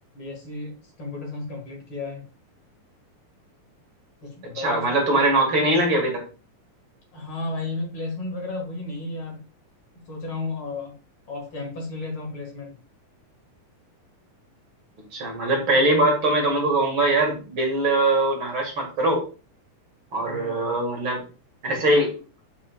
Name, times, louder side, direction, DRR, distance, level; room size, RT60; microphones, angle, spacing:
voice 1, 0.1-0.7 1.0-2.2 4.2-5.0 7.1-9.4 9.9-10.9 11.3-12.8 20.3-20.8, left 3 dB, 45° left, 1 dB, 2.4 m, -33 dB
voice 2, 4.6-6.2 15.1-19.3 20.1-21.2 21.6-22.1, right 2 dB, 45° right, 1 dB, 2.4 m, -22 dB
7.1 x 6.9 x 2.3 m, 0.34 s
omnidirectional pair, 3.6 m